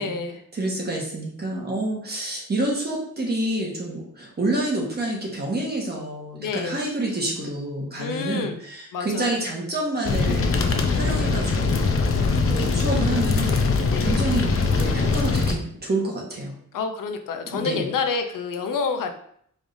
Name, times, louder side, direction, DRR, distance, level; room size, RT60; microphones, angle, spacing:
voice 1, 0.0-0.4 6.4-6.8 8.0-8.6 8.9-9.3 13.9-14.2 16.7-19.1, left 5 dB, 85° left, 6 dB, 0.6 m, -28 dB
voice 2, 0.5-10.6 10.9-11.9 12.4-13.6 14.0-16.5 17.5-17.9, right 1 dB, 30° right, -3 dB, 1.3 m, -28 dB
sound 1, 10.0-15.5, left 4 dB, 45° left, 0.6 m, -22 dB
4.9 x 3.3 x 2.6 m, 0.66 s
wide cardioid pair, 110°, 32 cm